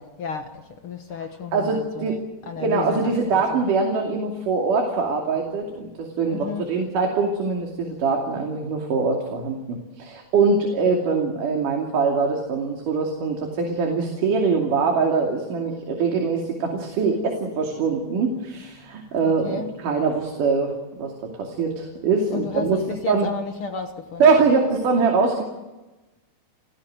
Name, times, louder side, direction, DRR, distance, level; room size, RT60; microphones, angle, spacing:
voice 1, 0.2-2.2 2.5-3.1 6.3-6.6 19.3-19.7 22.3-24.2, left 4 dB, 65° left, 1.3 m, -32 dB
voice 2, 1.5-2.2 2.6-20.7 21.0-23.3 24.2-25.4, right 4 dB, 55° right, 4.1 m, -23 dB
30.0 x 16.5 x 7.9 m
omnidirectional pair, 4.6 m